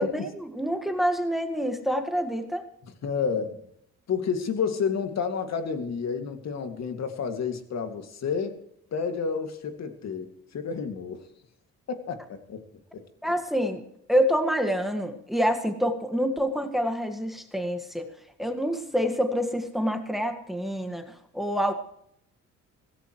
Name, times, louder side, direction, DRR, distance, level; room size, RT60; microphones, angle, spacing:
voice 1, 0.0-2.6 13.2-13.8 14.1-18.1 18.4-21.7, equal, ahead, 6 dB, 1.8 m, -27 dB
voice 2, 3.0-3.6 4.1-8.6 8.9-11.2 11.9-12.6 12.9-13.3, left 6 dB, 60° left, 7 dB, 2.3 m, -30 dB
17.0 x 17.0 x 3.2 m, 0.72 s
cardioid pair, 90°, 30 cm